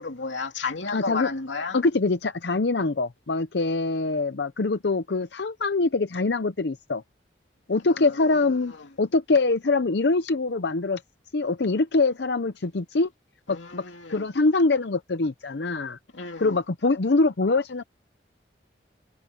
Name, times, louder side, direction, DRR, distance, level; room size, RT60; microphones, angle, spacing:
voice 1, 0.0-1.8 7.9-8.5 8.8-8.9 13.5-14.3 16.1-16.6, left 4 dB, 90° left, 2.6 m, -33 dB
voice 2, 0.9-1.3 1.7-7.0 7.7-8.7 9.0-11.0 11.3-13.1 13.5-13.8 14.1-16.0 16.4-17.8, left 3 dB, 65° left, 0.7 m, -24 dB
head